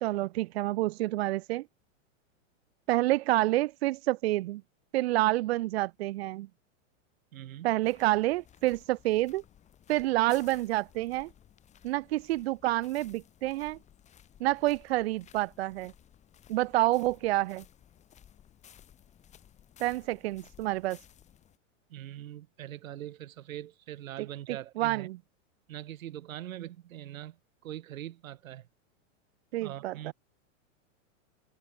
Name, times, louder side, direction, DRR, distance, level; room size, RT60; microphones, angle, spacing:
voice 1, 0.0-1.6 2.9-4.6 4.9-6.5 7.6-9.4 9.9-11.3 11.8-13.8 14.4-15.9 16.5-17.6 19.8-21.0 24.2-25.2 29.5-30.1, right 17 dB, 50° right, 1.0 m, -28 dB
voice 2, 7.3-7.7 21.9-25.1 25.7-27.4 27.6-28.6 29.6-30.1, right 12 dB, 85° right, 3.0 m, -42 dB
sound 1, 7.8-21.6, left 10 dB, 15° left, 6.5 m, -58 dB
supercardioid pair, 175°, 40 cm